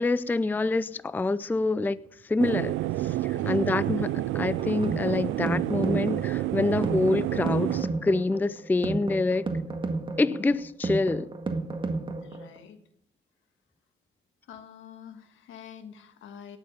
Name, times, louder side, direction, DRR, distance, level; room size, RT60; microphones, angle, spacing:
voice 1, 0.0-2.0 2.2-2.8 3.0-9.5 10.2-11.3, left 3 dB, 10° left, 0.4 m, -26 dB
sound 1, 2.4-7.8, right 16 dB, 80° right, 0.4 m, -29 dB
voice 2, 3.3-3.7 10.2-10.6 12.2-12.8 14.4-16.6, left 8 dB, 80° left, 1.5 m, -47 dB
sound 2, 4.6-12.6, right 3 dB, 25° right, 1.8 m, -33 dB
18.0 x 7.1 x 5.3 m
cardioid pair, 90°, 20 cm